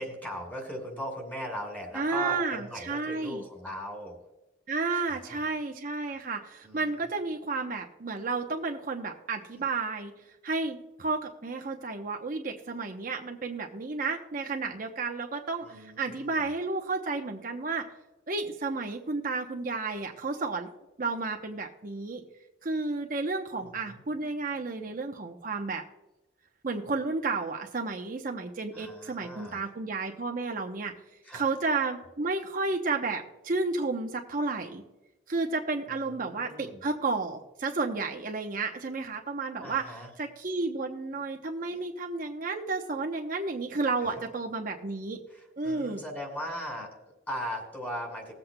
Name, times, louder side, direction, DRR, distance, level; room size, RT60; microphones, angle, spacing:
voice 1, 0.0-4.2 4.9-5.5 6.6-7.1 15.6-16.5 23.6-24.0 28.7-29.6 31.2-31.5 35.9-36.8 39.6-40.1 41.7-41.8 45.3-48.3, equal, 10° left, 1 dB, 2.4 m, -39 dB
voice 2, 1.9-3.4 4.7-10.1 10.4-17.9 18.3-20.7 21.0-22.2 22.6-25.8 26.6-30.9 31.3-34.8 35.3-39.8 40.2-45.2 45.6-46.0, right 3 dB, 45° right, 3 dB, 0.8 m, -32 dB
20.0 x 7.9 x 2.2 m, 0.99 s
head